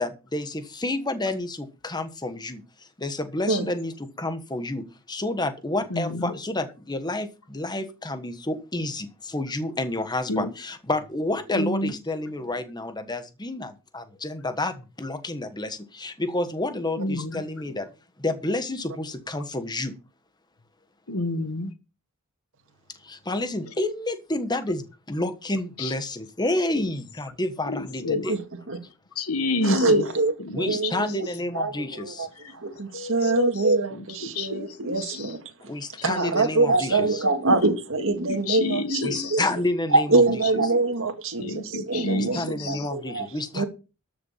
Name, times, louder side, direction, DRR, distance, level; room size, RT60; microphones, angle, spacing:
voice 1, 0.0-2.6 3.0-17.9 18.2-19.9 23.0-28.4 30.5-32.3 35.6-37.2 39.0-40.4 42.2-43.6, left 2 dB, 20° left, 1.3 m, -29 dB
voice 2, 5.9-6.3 10.3-10.5 11.5-11.9 17.0-17.4 21.1-21.7 25.8-25.9 27.7-28.3 29.1-30.1 30.4-30.8 32.9-33.5 33.9-34.0 34.3-35.3 38.3-39.4 40.6-40.9 41.4-42.8, left 2 dB, 80° left, 1.7 m, -29 dB
voice 3, 29.6-32.3 32.5-35.4 36.0-39.4 39.9-43.3 43.5-43.7, right 3 dB, 60° right, 1.9 m, -24 dB
13.0 x 7.0 x 5.7 m
head